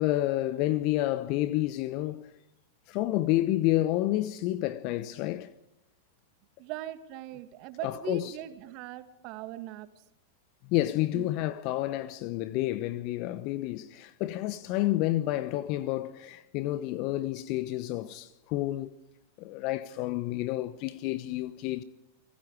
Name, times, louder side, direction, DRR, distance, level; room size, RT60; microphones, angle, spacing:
voice 1, 0.0-2.3 2.9-5.5 7.8-8.3 10.7-18.9 19.4-21.8, left 15 dB, 45° left, 1.0 m, -29 dB
voice 2, 6.6-9.9 11.1-11.4, right 14 dB, 45° right, 2.3 m, -40 dB
28.5 x 20.5 x 4.9 m
figure-of-eight pair, 95°, 0 cm